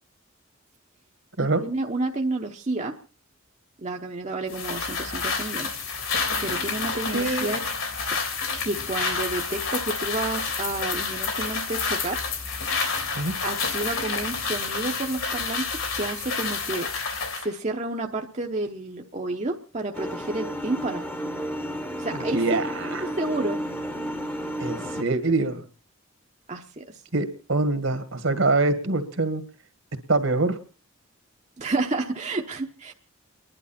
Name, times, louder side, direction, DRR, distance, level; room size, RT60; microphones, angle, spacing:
voice 1, 1.4-2.9 3.8-5.7 6.0-6.1 6.4-7.6 8.0-8.2 8.6-12.2 13.4-16.9 17.3-21.0 22.0-22.6 23.0-23.6 26.5-27.0 31.6-32.9, right 2 dB, 30° right, 1 dB, 0.9 m, -30 dB
sound 1, 4.5-17.5, left 4 dB, 70° left, 3.5 m, -29 dB
voice 2, 7.1-7.5 13.2-13.3 22.3-23.1 24.6-25.6 27.1-29.4 30.1-30.6, right 3 dB, 65° right, 10 dB, 1.7 m, -24 dB
sound 2, 19.9-25.0, equal, 10° left, 1.0 m, -32 dB
30.0 x 11.0 x 4.3 m, 0.38 s
head